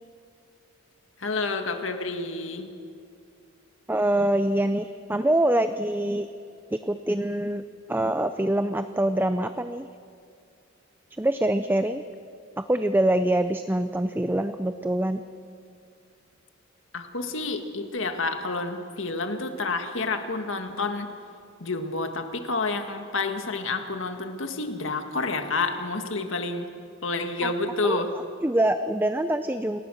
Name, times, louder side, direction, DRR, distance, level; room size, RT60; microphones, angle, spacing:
voice 1, 1.2-2.8 16.9-21.1 21.6-26.7 27.0-28.1, left 3 dB, 70° left, 6 dB, 1.9 m, -29 dB
voice 2, 3.9-6.3 6.7-7.6 7.9-9.9 11.2-12.0 12.6-15.2 27.4-27.5 27.8-28.0 28.4-29.8, right 1 dB, 10° right, 9 dB, 0.5 m, -24 dB
28.5 x 19.5 x 6.4 m, 2.4 s
head